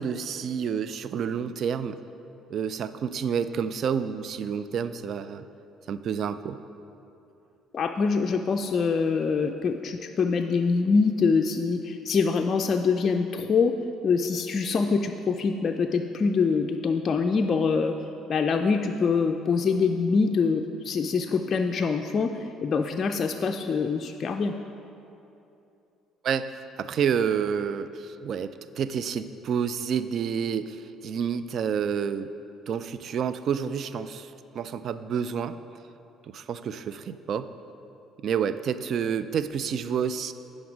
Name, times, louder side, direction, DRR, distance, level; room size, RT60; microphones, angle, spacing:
voice 1, 0.0-2.0 2.5-5.5 5.9-6.6 26.2-26.5 26.8-32.3 32.7-35.6 36.3-37.5 38.2-40.3, right 7 dB, 60° right, 13 dB, 0.3 m, -29 dB
voice 2, 7.7-13.7 14.0-18.0 18.3-24.5, left 5 dB, 45° left, 4 dB, 0.4 m, -24 dB
9.5 x 5.1 x 5.1 m, 2.9 s
supercardioid pair, 65°, 0 cm